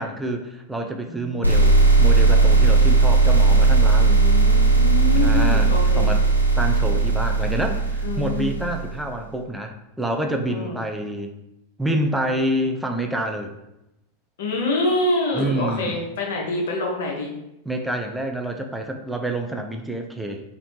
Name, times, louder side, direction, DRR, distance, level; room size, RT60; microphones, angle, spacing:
voice 1, 0.0-4.2 5.1-6.2 6.6-11.3 11.8-13.5 15.3-15.9 17.7-20.4, right 1 dB, 5° right, 3 dB, 0.3 m, -27 dB
voice 2, 1.1-1.9 4.1-6.1 8.0-8.7 10.5-10.8 14.4-17.3, left 2 dB, 60° left, -1 dB, 0.7 m, -26 dB
sound 1, 1.4-9.0, right 3 dB, 85° right, 0.3 m, -17 dB
3.0 x 2.5 x 3.1 m, 0.88 s
figure-of-eight pair, 90°, 0 cm